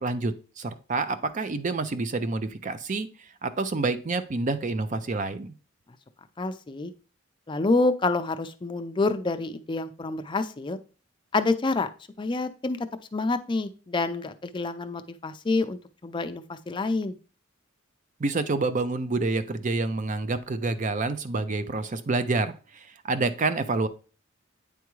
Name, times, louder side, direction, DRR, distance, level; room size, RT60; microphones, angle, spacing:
voice 1, 0.0-3.1 3.4-5.5 18.2-23.9, right 3 dB, 40° right, 11 dB, 0.5 m, -28 dB
voice 2, 6.4-6.9 7.5-10.8 11.3-11.9 12.2-12.8 13.1-17.1, left 3 dB, 25° left, 9 dB, 0.4 m, -27 dB
9.0 x 3.5 x 3.1 m, 0.37 s
head